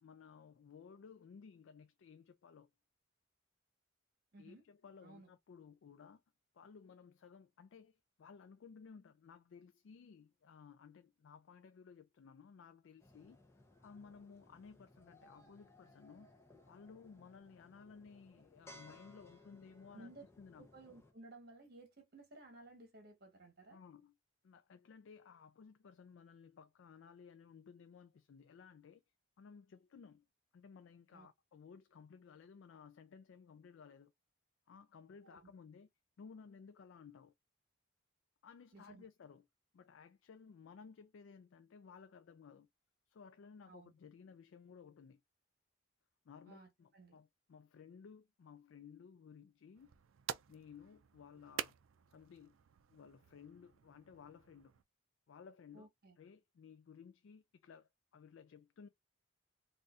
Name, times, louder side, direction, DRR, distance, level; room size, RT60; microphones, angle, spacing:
voice 1, 0.0-2.7 4.4-6.2 6.5-13.4 13.8-16.3 16.7-20.1 20.4-20.7 23.7-24.1 24.4-29.0 29.4-30.3 30.5-34.1 34.7-35.9 36.2-37.3 38.4-39.5 39.7-42.7 43.1-45.2 46.2-49.9 50.5-51.8 52.1-52.6 52.9-54.7 55.3-55.9 56.2-58.9, left 6 dB, 65° left, 0.3 m, -57 dB
voice 2, 4.3-4.6 5.0-5.3 19.9-20.2 20.6-23.8 31.1-31.3 35.2-35.5 38.7-39.1 43.7-43.9 46.5-47.2 55.7-56.2, right 2 dB, 50° right, 1.3 m, -57 dB
sound 1, 13.0-21.1, left 1 dB, 10° left, 0.6 m, -62 dB
sound 2, 49.7-54.8, right 9 dB, 75° right, 0.4 m, -49 dB
3.9 x 2.5 x 2.4 m
head